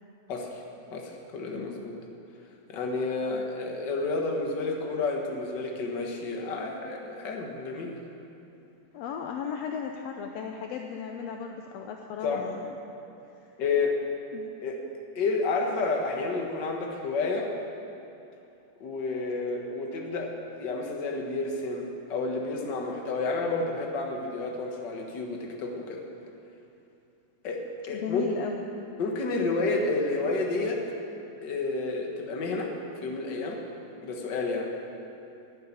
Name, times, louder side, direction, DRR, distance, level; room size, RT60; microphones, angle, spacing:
voice 1, 0.3-0.6 0.9-2.0 2.7-8.0 12.2-12.4 13.6-14.0 14.6-14.8 15.1-17.5 18.8-20.3 20.6-26.0 27.4-27.6 27.9-28.2 29.0-30.8 31.4-33.6 34.0-34.7, left 3 dB, 45° left, 1 dB, 1.5 m, -30 dB
voice 2, 8.9-12.7 13.3-13.5 14.3-14.5 27.9-28.7, left 7 dB, 80° left, 3 dB, 1.5 m, -36 dB
11.0 x 10.5 x 8.9 m, 2.7 s
omnidirectional pair, 3.7 m